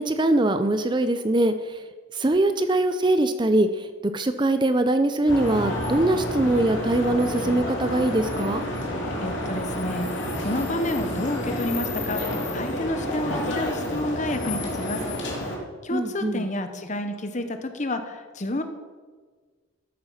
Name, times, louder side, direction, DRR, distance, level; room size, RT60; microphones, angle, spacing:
voice 1, 0.0-1.5 2.1-3.7 4.1-8.6 15.9-16.4, right 2 dB, 20° right, 9 dB, 0.5 m, -22 dB
sound 1, 5.3-15.6, left 1 dB, 60° left, 2.5 m, -29 dB
voice 2, 9.2-15.0 15.8-18.6, left 1 dB, 35° left, 7 dB, 0.9 m, -30 dB
13.0 x 8.4 x 5.7 m, 1.5 s
head